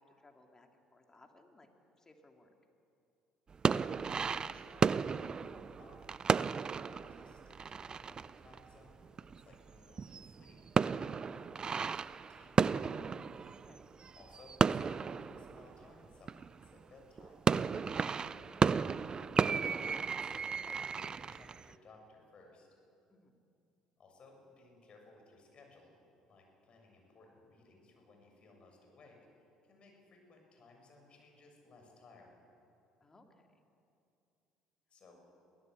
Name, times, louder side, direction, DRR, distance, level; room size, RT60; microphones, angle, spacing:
voice 1, 0.0-1.7 2.0-2.5 13.5-13.9 23.1-23.4 33.0-33.6, left 2 dB, 25° left, 3 dB, 3.1 m, -63 dB
sound 1, 3.5-9.7 10.0-16.7 17.2-21.7, right 6 dB, 35° right, 0.5 m, -34 dB
voice 2, 3.6-6.3 6.6-13.0 14.1-19.1 19.7-22.7 24.0-26.0 26.2-32.4 34.9-35.2, left 3 dB, 45° left, 2 dB, 7.1 m, -60 dB
23.0 x 17.0 x 8.1 m, 2.6 s
hypercardioid pair, 60°, 2 cm